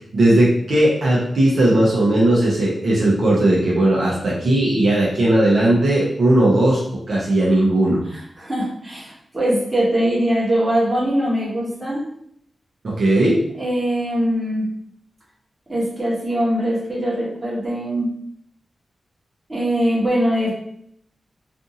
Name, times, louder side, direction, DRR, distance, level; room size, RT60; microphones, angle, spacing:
voice 1, 0.1-6.8 7.1-8.0 12.8-13.4, right 1 dB, 60° right, -5 dB, 0.7 m, -17 dB
voice 2, 8.1-12.0 13.6-14.7 15.7-18.1 19.5-20.5, equal, 20° right, -6 dB, 1.0 m, -22 dB
2.5 x 2.5 x 2.7 m, 0.69 s
wide cardioid pair, 150°, 0 cm